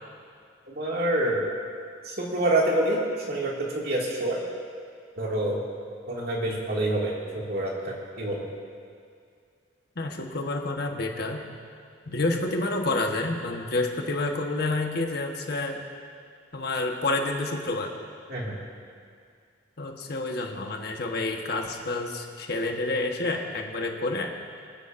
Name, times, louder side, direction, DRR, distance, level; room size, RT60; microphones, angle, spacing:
voice 1, 0.7-1.5 2.0-3.0 3.3-4.4 5.2-5.6 6.1-8.5 18.3-18.5, right 1 dB, 55° right, -3 dB, 2.3 m, -27 dB
voice 2, 10.0-11.4 12.1-15.8 16.5-18.0 19.8-24.3, left 2 dB, 60° left, 2 dB, 1.3 m, -29 dB
25.0 x 9.7 x 2.6 m, 2.3 s
head